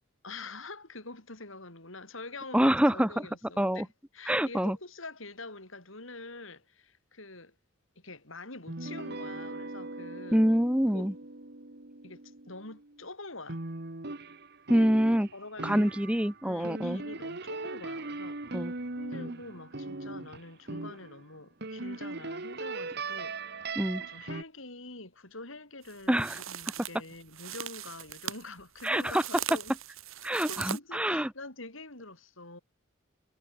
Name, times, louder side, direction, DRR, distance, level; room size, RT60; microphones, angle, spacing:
voice 1, 0.2-7.5 8.0-10.4 10.9-11.1 12.0-13.6 14.7-14.9 15.3-16.1 16.4-18.4 19.0-29.7 30.5-32.6, left 3 dB, 70° left, 6.3 m, -46 dB
voice 2, 2.5-3.3 3.6-3.9 4.3-4.8 10.3-11.1 14.7-15.3 15.6-17.0 18.5-18.7 23.8-24.0 26.1-26.4 28.8-29.2 30.2-31.3, equal, 5° right, 1.1 m, -26 dB
sound 1, 8.7-13.0 13.5-21.2 21.6-24.4, right 3 dB, 50° right, 1.7 m, -39 dB
sound 2, 25.8-30.8, right 9 dB, 80° right, 2.6 m, -40 dB
head